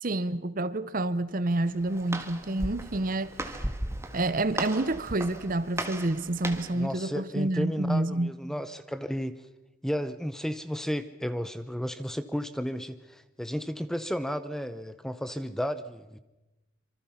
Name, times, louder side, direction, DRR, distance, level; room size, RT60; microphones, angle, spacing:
voice 1, 0.0-3.6 4.1-8.3, right 2 dB, 45° right, 0.8 m, -28 dB
Walk footsteps, 1.5-6.8, right 1 dB, 15° right, 1.6 m, -37 dB
voice 2, 6.7-9.4 9.8-16.2, equal, ahead, 0.7 m, -33 dB
26.0 x 24.5 x 5.8 m
head